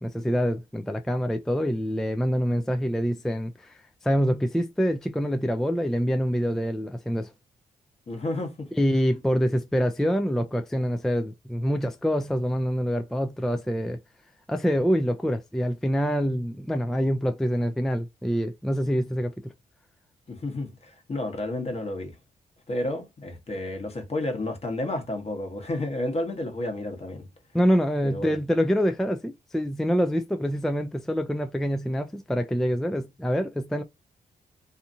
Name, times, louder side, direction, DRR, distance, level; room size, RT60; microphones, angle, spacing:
voice 1, 0.0-3.8 4.0-7.3 8.8-14.0 14.5-19.3 27.5-33.8, equal, 5° left, 0.3 m, -25 dB
voice 2, 8.1-8.7 20.3-22.1 22.7-27.3 28.0-28.3, left 1 dB, 40° left, 1.1 m, -31 dB
2.7 x 2.4 x 2.6 m
cardioid pair, 65°, 16 cm